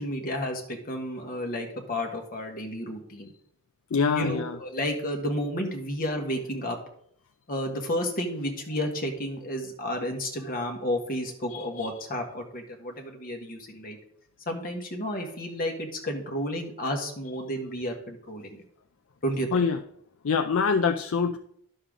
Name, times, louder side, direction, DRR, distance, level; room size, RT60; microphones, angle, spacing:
voice 1, 0.0-3.3 4.1-6.8 7.5-14.0 14.5-18.6 19.2-19.5, equal, 40° left, 3 dB, 1.6 m, -31 dB
voice 2, 3.9-4.6 11.5-11.9 19.5-19.8 20.2-21.4, left 5 dB, 65° left, 7 dB, 0.5 m, -25 dB
11.0 x 6.6 x 3.7 m, 0.69 s
head